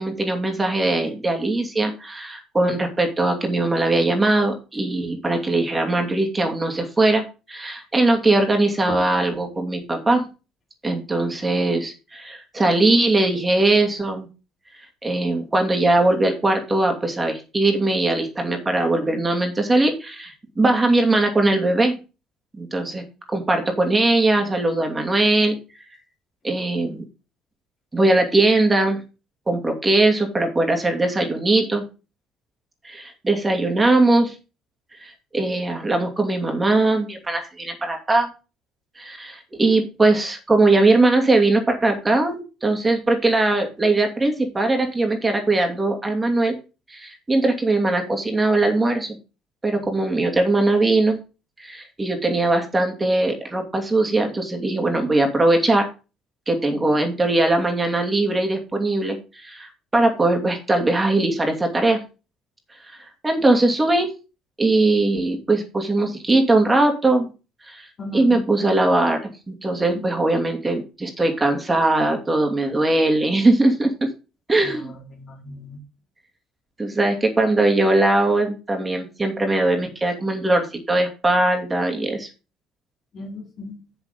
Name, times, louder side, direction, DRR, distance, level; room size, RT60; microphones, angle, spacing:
voice 1, 0.0-10.3 10.8-14.3 15.0-22.0 22.6-23.0 23.3-25.6 26.4-27.0 27.9-29.0 29.5-31.8 32.8-34.3 35.0-38.3 39.0-46.6 46.9-49.2 49.6-51.2 51.6-55.9 56.5-62.0 63.2-64.1 64.6-67.3 67.7-67.9 68.1-74.1 74.5-74.9 76.8-82.3, right 2 dB, 20° right, 3 dB, 2.8 m, -20 dB
voice 2, 68.0-68.4 69.9-70.0 74.6-75.8 83.1-83.8, left 2 dB, 50° left, 1 dB, 3.6 m, -36 dB
7.1 x 7.0 x 5.2 m, 0.31 s
hypercardioid pair, 65°, 0 cm